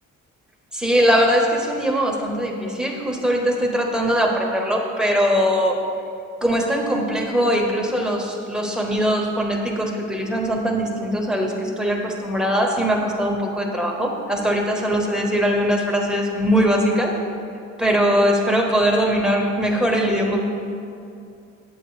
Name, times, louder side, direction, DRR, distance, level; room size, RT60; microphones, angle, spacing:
voice 1, 0.7-5.8 6.4-17.1 17.8-20.4, equal, ahead, -1 dB, 1.1 m, -21 dB
8.3 x 8.2 x 3.2 m, 2.5 s
cardioid pair, 90°, 30 cm